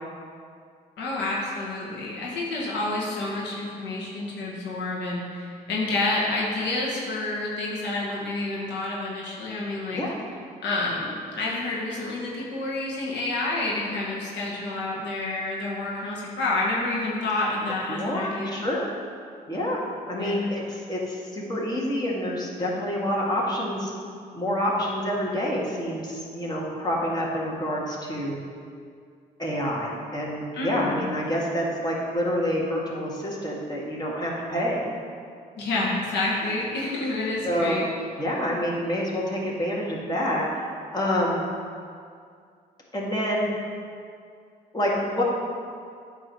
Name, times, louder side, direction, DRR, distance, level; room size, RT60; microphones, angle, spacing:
voice 1, 1.0-10.0 10.6-18.6 20.2-20.5 30.5-31.1 35.6-37.8, left 2 dB, 80° left, -4 dB, 1.2 m, -29 dB
voice 2, 17.9-18.9 19.5-19.8 20.1-23.9 24.3-28.4 29.4-34.8 37.4-37.9 38.2-40.4 40.9-41.4 42.9-43.5 44.7-45.2, equal, 25° left, -4 dB, 1.8 m, -27 dB
8.6 x 3.0 x 6.2 m, 2.2 s
supercardioid pair, 60°, 18 cm